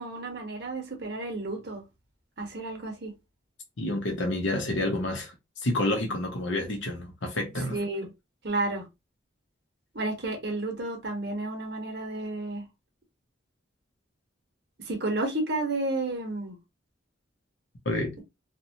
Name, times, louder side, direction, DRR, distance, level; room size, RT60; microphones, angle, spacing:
voice 1, 0.0-1.8 2.4-3.1 7.7-8.1 8.4-8.9 9.9-12.6 14.9-16.6, right 2 dB, 60° right, 0.9 m, -31 dB
voice 2, 3.8-5.3 5.6-7.8 17.9-18.1, left 1 dB, 75° left, 0.8 m, -29 dB
2.8 x 2.2 x 2.7 m
head